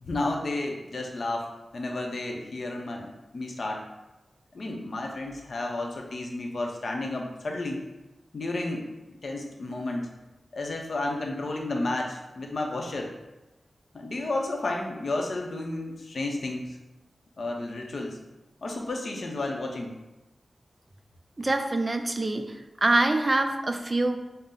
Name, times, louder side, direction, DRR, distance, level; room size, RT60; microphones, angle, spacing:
voice 1, 0.0-1.5 1.7-3.8 4.5-7.8 8.3-8.9 9.2-10.1 10.5-13.1 13.9-16.7 17.4-18.2 18.6-19.9, left 2 dB, 65° left, 1 dB, 0.6 m, -32 dB
voice 2, 21.4-22.4 22.8-24.2, right 2 dB, 30° right, 6 dB, 0.4 m, -24 dB
5.4 x 2.0 x 3.7 m, 1.0 s
wide cardioid pair, 120°, 0 cm